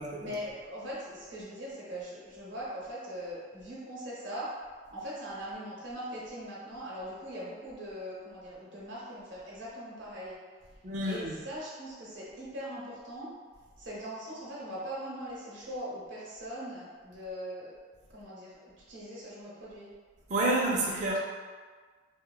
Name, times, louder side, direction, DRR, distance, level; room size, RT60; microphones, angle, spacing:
voice 1, 0.2-4.5 4.9-10.4 11.0-13.3 13.8-17.7 18.1-18.6 18.9-19.9, equal, 70° right, -7 dB, 0.7 m, -41 dB
voice 2, 10.8-11.4 20.3-21.2, right 1 dB, 35° right, -4 dB, 0.4 m, -29 dB
3.2 x 2.1 x 2.2 m, 1.5 s
head